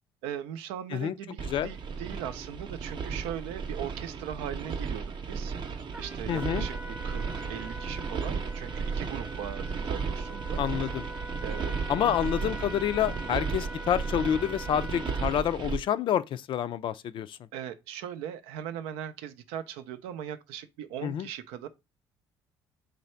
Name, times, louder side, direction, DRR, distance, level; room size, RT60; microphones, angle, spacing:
voice 1, 0.2-6.7 7.0-10.6 11.4-12.2 17.5-21.7, right 10 dB, 90° right, 0.5 m, -39 dB
sound 1, 1.4-15.8, right 5 dB, 50° right, 0.7 m, -34 dB
Trumpet, 5.9-15.5, left 1 dB, 15° right, 0.6 m, -43 dB
voice 2, 6.3-6.7 10.6-11.1 11.9-17.4 21.0-21.3, left 10 dB, 55° left, 0.4 m, -28 dB
3.2 x 2.6 x 4.3 m
supercardioid pair, 80°, 10 cm